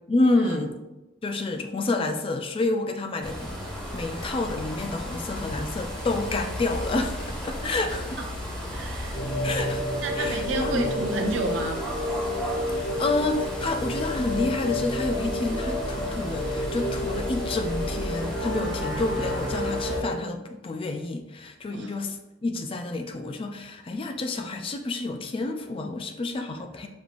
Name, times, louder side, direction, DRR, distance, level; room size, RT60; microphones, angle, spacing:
voice 1, 0.1-0.8 1.2-8.1 9.4-9.9 10.2-10.8 12.7-26.9, left 2 dB, 30° left, 5 dB, 0.3 m, -29 dB
sound 1, 3.2-20.0, equal, 5° left, 1.2 m, -34 dB
voice 2, 8.7-9.2 10.0-11.9 21.7-22.0, right 2 dB, 75° right, 4 dB, 0.6 m, -31 dB
sound 2, 9.1-20.0, left 1 dB, 50° left, 1.3 m, -31 dB
5.2 x 3.1 x 2.4 m, 1.0 s
head